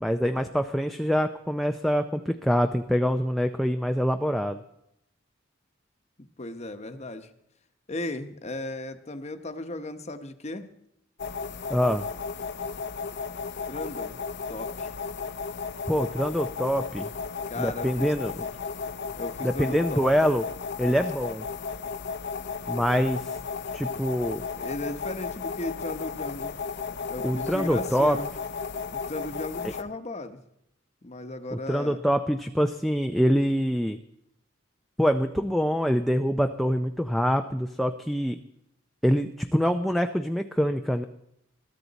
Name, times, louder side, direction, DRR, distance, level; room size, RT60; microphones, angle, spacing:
voice 1, 0.0-4.6 11.7-12.0 15.9-17.1 17.6-18.5 19.4-20.4 20.8-21.4 22.7-23.4 23.7-24.4 27.2-28.2 31.5-34.0 35.0-38.4 39.0-41.0, equal, ahead, 5 dB, 0.5 m, -25 dB
voice 2, 6.4-7.3 7.9-10.7 13.7-14.2 14.5-14.9 17.5-18.1 19.2-20.0 24.5-26.5 27.1-28.3 28.9-30.4 31.0-32.0, left 2 dB, 35° left, 9 dB, 1.0 m, -36 dB
sound 1, 11.2-29.8, left 5 dB, 55° left, 0.7 m, -34 dB
21.5 x 13.0 x 4.1 m, 0.79 s
head